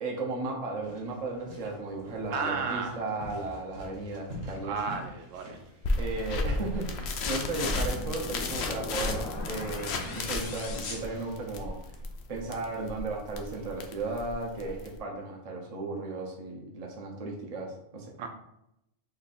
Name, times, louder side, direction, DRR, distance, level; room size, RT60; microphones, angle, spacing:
voice 1, 0.0-4.8 6.0-11.8 12.3-18.3, right 3 dB, 35° right, 0 dB, 0.7 m, -35 dB
sound 1, 0.8-9.3, equal, 60° right, 1.1 m, -46 dB
voice 2, 2.3-3.0 4.5-5.6 18.2-18.3, right 5 dB, 80° right, 4 dB, 0.9 m, -33 dB
sound 2, 5.8-15.0, left 3 dB, 65° left, 0.7 m, -33 dB
sound 3, 7.3-11.9, left 2 dB, 85° left, 1.1 m, -40 dB
3.2 x 2.5 x 4.1 m, 0.82 s
omnidirectional pair, 1.3 m